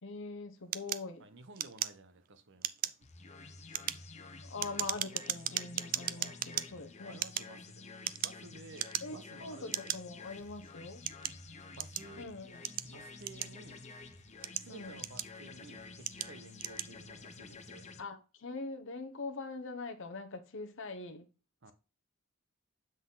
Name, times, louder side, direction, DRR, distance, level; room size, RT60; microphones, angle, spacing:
voice 1, 0.0-1.2 4.5-7.2 9.0-11.1 12.2-12.7 14.7-15.0 18.0-21.3, left 3 dB, 65° left, 0.8 m, -43 dB
sound 1, 0.7-2.3 2.6-3.0 3.6-6.7 7.1-8.4 8.7-9.3 9.7-10.0 10.6-12.1 12.6-13.8 14.3-15.5 16.0-16.3 16.6-16.9, right 12 dB, 40° right, 0.3 m, -37 dB
voice 2, 1.2-2.9 6.1-6.4 7.0-7.8 8.2-9.9 11.7-12.3 12.8-13.8 14.5-17.9 21.6-21.7, right 3 dB, 60° right, 0.8 m, -54 dB
sound 2, 3.0-18.0, left 3 dB, 35° left, 0.7 m, -50 dB
sound 3, 10.2-17.7, right 2 dB, 25° right, 3.6 m, -71 dB
7.7 x 4.0 x 3.9 m
head